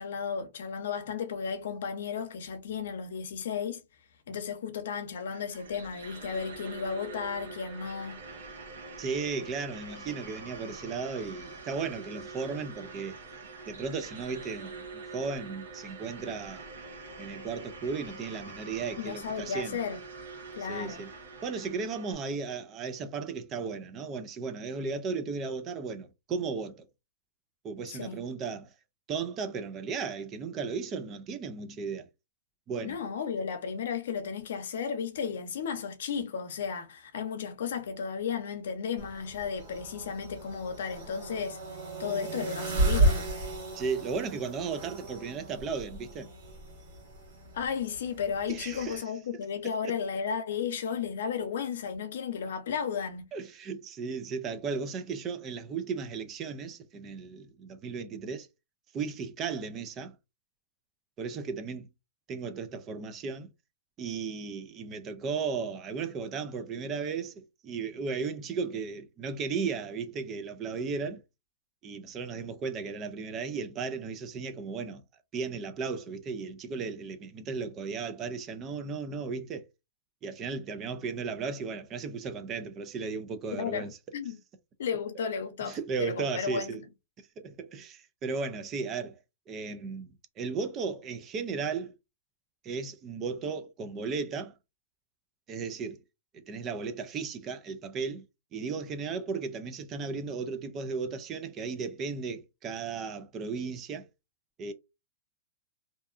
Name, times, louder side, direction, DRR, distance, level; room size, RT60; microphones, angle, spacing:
voice 1, 0.0-3.8 4.3-8.2 19.0-20.0 20.6-21.0 27.9-28.2 32.8-41.6 42.0-43.3 47.5-53.3 83.5-84.4 84.8-86.8, left 6 dB, 70° left, 0.6 m, -34 dB
sound 1, 5.2-22.1, right 3 dB, 80° right, 1.0 m, -45 dB
voice 2, 9.0-13.2 13.7-16.7 17.2-19.8 20.7-21.1 21.4-26.9 27.6-28.7 29.1-32.1 32.7-33.0 43.7-46.3 48.5-49.0 49.8-49.9 53.3-58.5 58.9-60.1 61.2-61.9 62.3-63.5 64.0-71.2 71.8-75.0 75.3-79.7 80.2-83.9 85.6-86.8 87.4-89.2 89.5-91.9 92.6-94.5 95.5-96.0 96.3-98.2 98.5-104.1 104.6-104.7, right 5 dB, 25° right, 0.4 m, -35 dB
sound 2, 39.0-49.0, right 1 dB, 55° right, 1.3 m, -33 dB
2.6 x 2.3 x 2.4 m
hypercardioid pair, 145°, 0 cm